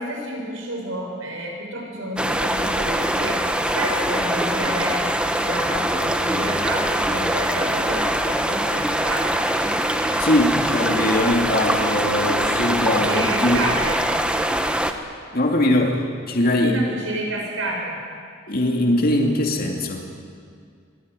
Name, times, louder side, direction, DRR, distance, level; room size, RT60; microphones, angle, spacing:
voice 1, 0.0-3.5 3.7-9.6 13.1-14.0 16.6-18.0, right 1 dB, 75° right, 0 dB, 6.9 m, -30 dB
sound 1, 2.2-14.9, right 1 dB, 5° right, 1.2 m, -23 dB
voice 2, 10.2-13.7 15.3-16.8 18.5-20.1, left 1 dB, 50° left, 1 dB, 2.6 m, -21 dB
24.0 x 18.0 x 9.9 m, 2.1 s
head